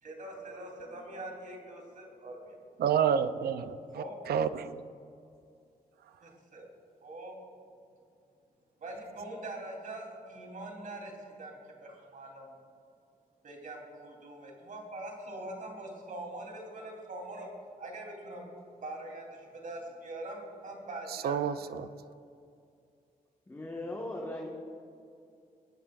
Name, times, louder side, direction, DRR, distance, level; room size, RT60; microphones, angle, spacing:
voice 1, 0.0-2.6 3.9-4.2 6.2-6.7 7.0-7.4 8.8-12.5 13.4-17.5 17.8-18.5 18.8-21.5, right 2 dB, 60° right, 0 dB, 3.4 m, -43 dB
voice 2, 2.8-4.8 21.2-21.9, right 8 dB, 90° right, 12 dB, 0.6 m, -29 dB
voice 3, 23.5-24.5, left 1 dB, 15° left, -2 dB, 1.5 m, -38 dB
24.0 x 10.5 x 2.5 m, 2.5 s
cardioid pair, 90°, 16 cm